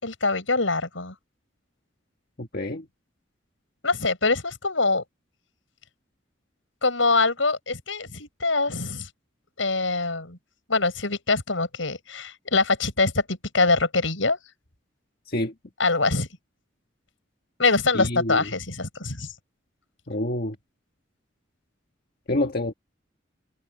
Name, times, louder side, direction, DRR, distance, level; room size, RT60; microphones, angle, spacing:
voice 1, 0.0-1.1 3.8-5.0 6.8-9.1 9.6-10.4 10.7-14.4 15.8-16.3 17.6-19.3, left 3 dB, 85° left, 6.5 m, -24 dB
voice 2, 2.4-2.9 15.3-15.5 17.9-18.5 20.1-20.6 22.3-22.7, left 1 dB, 50° left, 1.7 m, -27 dB
head